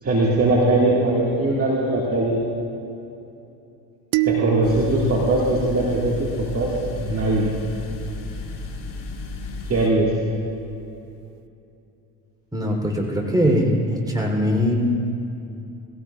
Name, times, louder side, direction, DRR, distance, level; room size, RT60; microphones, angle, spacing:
voice 1, 0.0-2.4 4.2-7.5 9.7-10.1, right 2 dB, 25° right, -4 dB, 2.1 m, -20 dB
sound 1, 4.1-6.5, right 20 dB, 55° right, 0.5 m, -27 dB
sound 2, 4.6-9.9, left 3 dB, 40° left, 2.3 m, -33 dB
voice 2, 12.5-14.7, equal, 10° right, -1 dB, 3.6 m, -21 dB
20.5 x 16.5 x 2.5 m, 2.8 s
hypercardioid pair, 65°, 50 cm